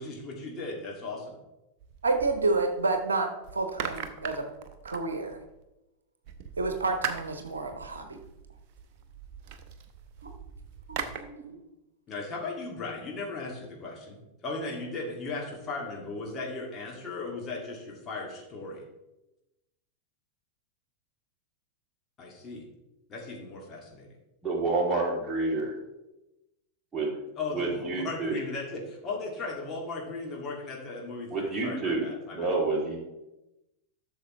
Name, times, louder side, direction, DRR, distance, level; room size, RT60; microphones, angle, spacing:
voice 1, 0.0-1.4 12.1-18.8 22.2-22.7 23.1-24.1 27.4-32.6, left 3 dB, 25° left, -2 dB, 2.4 m, -37 dB
sound 1, 1.8-3.0 3.4-5.6 6.2-11.2, right 7 dB, 40° right, 0.9 m, -40 dB
voice 2, 2.0-4.4 4.8-5.4 6.6-8.2 10.2-10.3 10.9-11.6, right 3 dB, 70° right, 6 dB, 0.9 m, -29 dB
voice 3, 24.4-25.7 26.9-27.2 27.5-28.4 31.3-32.1 32.3-33.0, right 3 dB, 15° right, -4 dB, 3.0 m, -28 dB
12.0 x 6.6 x 3.2 m, 0.97 s
figure-of-eight pair, 90°, 0 cm